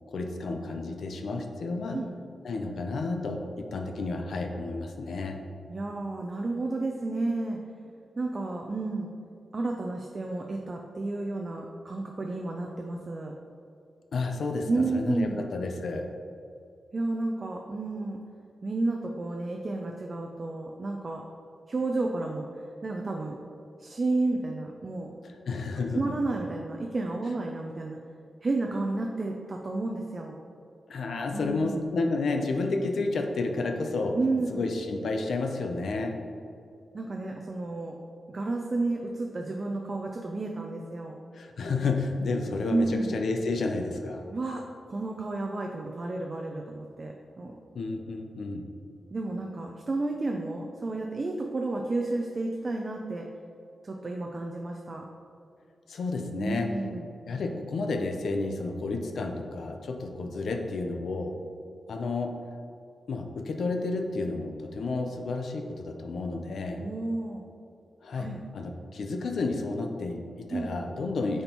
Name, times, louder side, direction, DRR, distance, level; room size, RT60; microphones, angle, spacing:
voice 1, 0.1-2.0 2.4-5.4 14.1-16.1 25.2-26.0 30.9-34.2 34.5-36.2 41.3-44.3 47.7-48.7 55.9-56.7 57.3-61.4 61.9-62.4 63.1-66.9 68.0-71.4, left 3 dB, 65° left, 4 dB, 0.5 m, -31 dB
voice 2, 5.7-7.6 8.2-9.1 9.5-13.3 14.7-15.4 16.9-18.2 18.6-21.2 21.7-22.4 22.8-23.4 23.8-25.2 25.9-28.0 28.4-30.4 31.3-31.8 34.2-34.5 36.9-38.0 38.3-41.2 42.7-43.1 44.3-47.6 49.1-53.3 53.8-55.0 56.4-57.1 66.8-67.4 68.1-68.4 70.5-70.7, right 2 dB, 30° right, 1 dB, 0.4 m, -31 dB
8.7 x 4.3 x 2.9 m, 2.4 s
wide cardioid pair, 175°, 0 cm